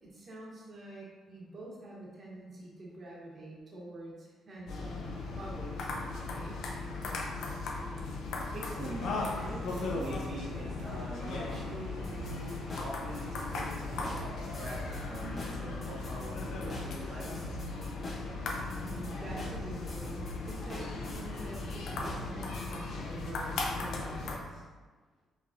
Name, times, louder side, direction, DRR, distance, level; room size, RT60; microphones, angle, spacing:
voice 1, 0.0-5.9 6.2-6.6 18.8-24.6, right 1 dB, 40° right, -4 dB, 1.2 m, -46 dB
sound 1, 4.7-24.4, left 3 dB, 80° left, 0.6 m, -37 dB
voice 2, 8.5-9.6 9.9-12.5 12.8-17.4, right 1 dB, 55° right, -5 dB, 1.1 m, -44 dB
sound 2, 8.8-15.0, right 2 dB, 85° right, 0.8 m, -51 dB
sound 3, 12.0-22.7, equal, 40° left, 1.2 m, -44 dB
5.1 x 3.1 x 2.7 m, 1.4 s
cardioid pair, 90°, 0 cm